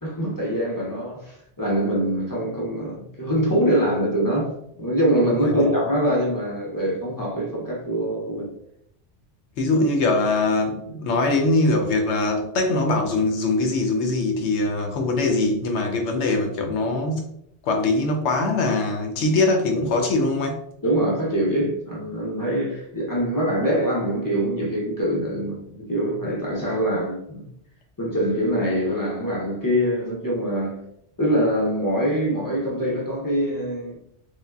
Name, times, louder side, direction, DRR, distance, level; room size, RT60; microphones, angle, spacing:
voice 1, 0.0-8.5 20.8-27.5 28.0-30.8 31.2-34.0, equal, 30° left, 0.4 m, -24 dB
voice 2, 5.3-5.7 9.6-17.3 17.6-20.6, left 2 dB, 75° left, 0.9 m, -22 dB
3.4 x 2.1 x 2.2 m
omnidirectional pair, 1.2 m